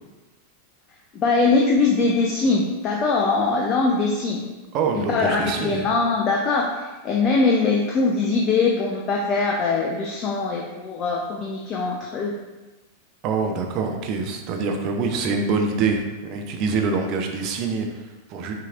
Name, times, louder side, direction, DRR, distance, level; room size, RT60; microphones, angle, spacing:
voice 1, 1.1-4.5 5.1-12.3, left 3 dB, 30° left, -1 dB, 0.5 m, -22 dB
voice 2, 4.7-5.9 13.2-18.5, right 4 dB, 40° right, 3 dB, 0.6 m, -25 dB
5.8 x 2.9 x 2.4 m, 1.1 s
figure-of-eight pair, 90°, 0 cm